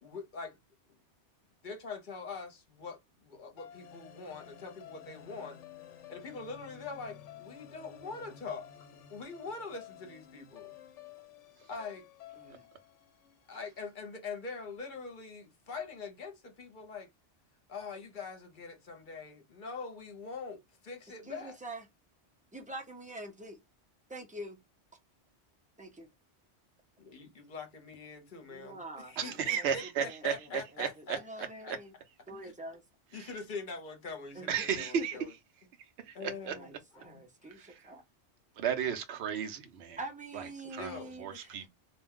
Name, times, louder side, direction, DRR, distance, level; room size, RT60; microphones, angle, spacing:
voice 1, 0.0-0.6 1.6-5.6 6.1-10.7 11.7-12.1 13.5-17.1 17.7-21.6 27.0-31.8 32.4-32.5 33.1-35.3 36.1-36.7 37.0-37.2 40.6-41.2, left 4 dB, 50° left, 0.8 m, -43 dB
sound 1, 3.6-13.8, left 9 dB, 90° left, 0.9 m, -52 dB
voice 2, 21.3-21.8 22.5-23.6 24.1-24.6 25.8-26.1 28.5-29.7 30.0-30.1 31.2-31.9 32.3-32.8 34.4-34.7 34.9-35.0 36.6-38.0 40.0-41.6, right 2 dB, 10° right, 0.5 m, -45 dB
voice 3, 29.2-31.2 31.7-31.8 33.1-33.3 34.5-35.4 35.8-36.6 37.5-37.9 38.6-40.0 40.3-41.7, right 7 dB, 65° right, 0.9 m, -34 dB
2.5 x 2.2 x 3.4 m
omnidirectional pair, 1.2 m